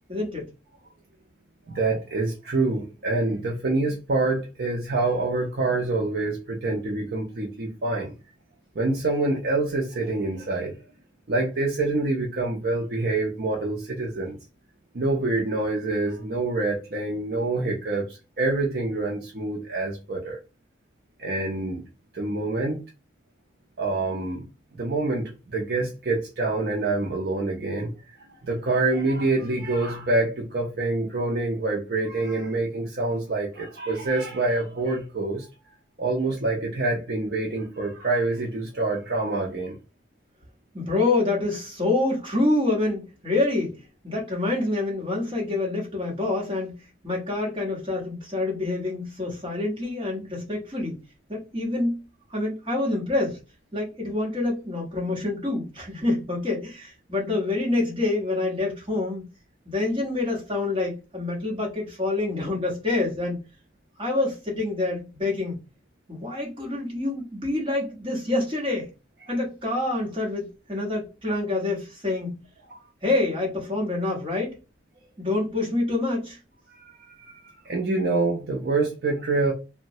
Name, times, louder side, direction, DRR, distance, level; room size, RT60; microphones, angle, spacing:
voice 1, 0.1-0.5 40.7-51.0 51.3-52.0 52.3-53.4 53.7-59.2 59.6-63.4 64.0-65.6 66.1-68.9 69.3-72.4 73.0-74.6 75.2-76.4, left 2 dB, 25° right, 1.0 m, -27 dB
voice 2, 1.7-8.1 8.8-10.8 11.3-14.4 14.9-20.4 21.2-21.8 22.1-22.8 23.8-24.4 24.7-27.9 28.4-35.5 36.0-39.8 72.7-72.8 76.7-77.3 77.6-79.5, right 2 dB, 55° right, 0.5 m, -26 dB
2.9 x 2.1 x 2.7 m
head